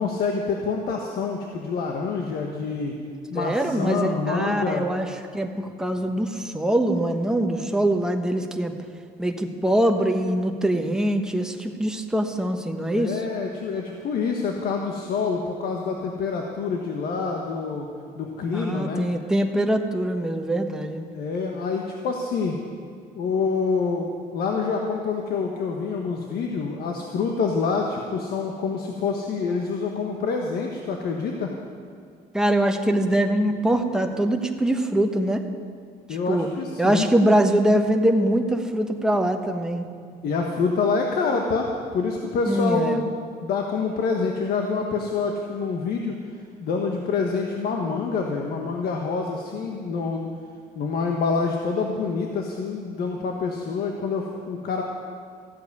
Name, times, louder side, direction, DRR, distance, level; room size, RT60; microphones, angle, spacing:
voice 1, 0.0-2.9 3.3-4.9 12.9-17.9 18.1-19.0 21.1-22.6 23.2-31.5 36.1-37.1 40.2-46.2 46.6-50.3 50.7-54.8, left 4 dB, 65° left, 2 dB, 1.4 m, -26 dB
voice 2, 3.3-8.7 9.2-13.2 18.5-21.0 32.3-35.4 36.3-36.5 36.8-39.8 42.5-43.1, right 1 dB, 5° right, 4 dB, 1.1 m, -23 dB
14.5 x 7.9 x 9.6 m, 2.2 s
cardioid pair, 110°, 17 cm